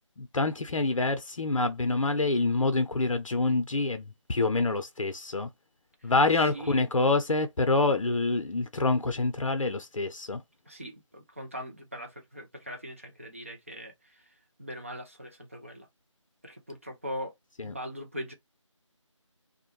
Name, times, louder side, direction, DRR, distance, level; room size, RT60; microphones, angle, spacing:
voice 1, 0.2-5.5 6.0-10.4 17.6-17.7, left 3 dB, 85° left, 0.6 m, -26 dB
voice 2, 6.5-6.9 10.7-15.9 16.4-17.3 17.6-18.3, equal, 25° right, 0.5 m, -41 dB
2.5 x 2.1 x 3.0 m
figure-of-eight pair, 165°, 16 cm